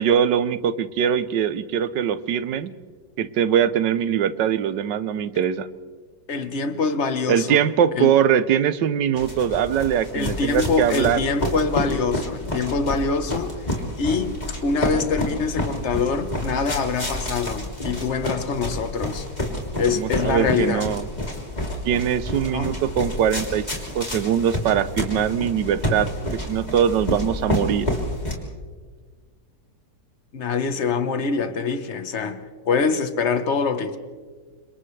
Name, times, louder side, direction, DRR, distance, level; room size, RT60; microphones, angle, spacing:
voice 1, 0.0-2.7 3.2-5.7 7.3-11.2 19.9-21.0 21.8-23.7 23.9-27.9, right 9 dB, 85° right, 1.5 m, -22 dB
voice 2, 6.3-7.6 8.0-8.1 10.1-13.5 14.0-19.3 19.8-20.9 22.5-22.7 30.3-34.0, left 5 dB, 45° left, 1.4 m, -24 dB
sound 1, 9.2-28.3, left 1 dB, 25° left, 3.4 m, -29 dB
29.5 x 26.5 x 3.3 m
omnidirectional pair, 1.9 m